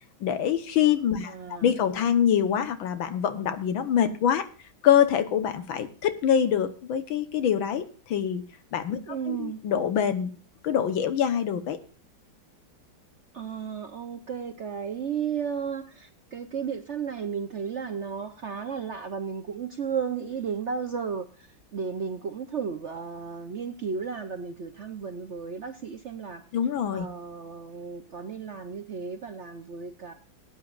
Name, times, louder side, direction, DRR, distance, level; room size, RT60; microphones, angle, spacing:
voice 1, 0.2-1.3 1.6-4.5 4.8-8.4 8.7-10.3 10.6-11.8 26.5-27.1, left 9 dB, 90° left, 10 dB, 1.9 m, -25 dB
voice 2, 1.2-1.7 9.1-9.6 13.3-26.4 26.9-30.1, right 6 dB, 55° right, 7 dB, 0.8 m, -34 dB
20.5 x 9.4 x 2.5 m, 0.38 s
omnidirectional pair, 2.1 m